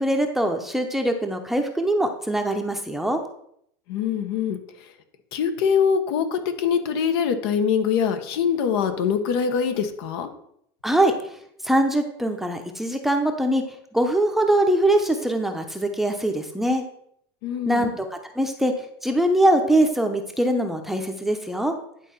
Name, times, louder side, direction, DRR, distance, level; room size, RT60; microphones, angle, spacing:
voice 1, 0.0-3.2 10.8-11.1 11.6-13.6 13.9-16.8 17.7-18.7 19.0-21.7, right 1 dB, ahead, 4 dB, 0.8 m, -22 dB
voice 2, 3.9-4.9 5.3-10.3 17.4-17.9, left 7 dB, 70° left, 8 dB, 1.3 m, -24 dB
10.5 x 4.1 x 5.7 m, 0.70 s
supercardioid pair, 150°, 13 cm